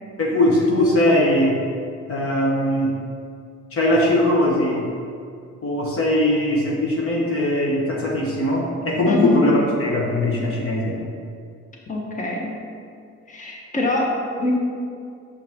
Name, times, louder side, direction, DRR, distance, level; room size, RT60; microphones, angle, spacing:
voice 1, 0.2-1.7 2.1-3.0 3.7-4.9 5.6-11.1, left 1 dB, 50° left, -3 dB, 1.1 m, -20 dB
voice 2, 9.1-9.4 11.9-12.5 13.3-14.5, left 2 dB, 25° left, -2 dB, 1.2 m, -24 dB
6.4 x 5.5 x 3.6 m, 2.3 s
cardioid pair, 90°, 30 cm